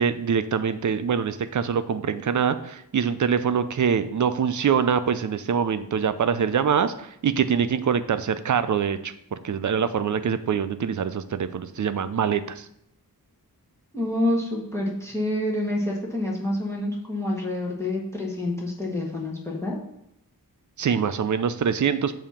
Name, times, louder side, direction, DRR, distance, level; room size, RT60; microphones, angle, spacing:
voice 1, 0.0-12.7 20.8-22.2, right 7 dB, 55° right, 12 dB, 0.5 m, -24 dB
voice 2, 13.9-19.8, left 1 dB, 5° left, -2 dB, 1.1 m, -27 dB
6.9 x 2.8 x 5.7 m, 0.77 s
wide cardioid pair, 95°, 37 cm